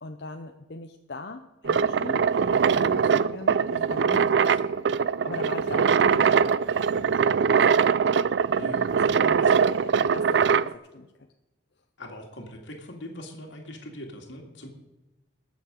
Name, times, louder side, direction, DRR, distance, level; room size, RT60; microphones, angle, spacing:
voice 1, 0.0-4.9 5.2-7.4 7.8-8.1 9.1-11.1, left 2 dB, 60° left, 5 dB, 0.7 m, -40 dB
sound 1, 1.6-10.7, right 6 dB, 65° right, 0.4 m, -22 dB
voice 2, 8.6-8.9 9.4-9.6 12.0-14.7, left 1 dB, 80° left, 1 dB, 2.2 m, -41 dB
19.5 x 7.1 x 5.2 m, 1.0 s
head